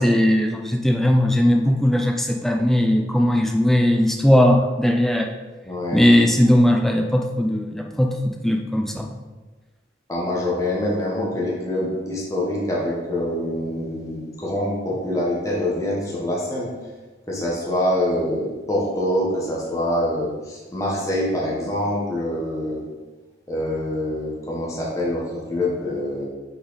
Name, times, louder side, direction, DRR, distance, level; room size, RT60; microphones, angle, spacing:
voice 1, 0.0-5.3 5.9-9.1, left 1 dB, ahead, 3 dB, 0.3 m, -18 dB
voice 2, 5.6-6.0 10.1-16.7 17.3-22.8 23.5-26.3, left 1 dB, 15° left, -5 dB, 1.1 m, -25 dB
5.7 x 4.1 x 4.0 m, 1.2 s
head